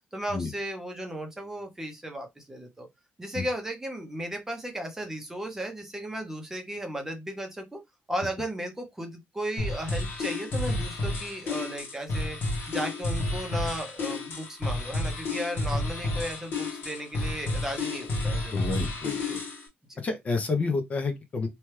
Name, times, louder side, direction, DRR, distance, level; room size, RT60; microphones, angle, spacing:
voice 1, 0.1-2.9 3.2-7.8 8.1-12.4 12.7-18.6 19.9-20.0, right 1 dB, 10° right, 0.7 m, -35 dB
sound 1, 9.6-19.7, left 2 dB, 55° left, 1.2 m, -31 dB
voice 2, 18.5-19.4 20.0-21.5, left 3 dB, 35° left, 0.6 m, -29 dB
2.8 x 2.3 x 3.2 m
cardioid pair, 160°, 4 cm